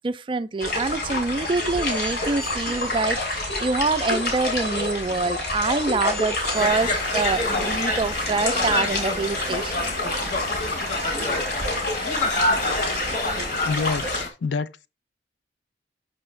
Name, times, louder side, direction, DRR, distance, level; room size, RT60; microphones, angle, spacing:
voice 1, 0.0-9.9, right 3 dB, 25° right, 0.3 m, -26 dB
sound 1, 0.6-14.2, left 2 dB, 65° left, 2.9 m, -28 dB
sound 2, 1.3-7.1, equal, 5° left, 0.7 m, -38 dB
Conversation, 6.5-14.3, left 2 dB, 45° left, 1.3 m, -27 dB
voice 2, 13.7-14.9, left 4 dB, 85° left, 0.4 m, -27 dB
6.0 x 5.5 x 3.2 m
head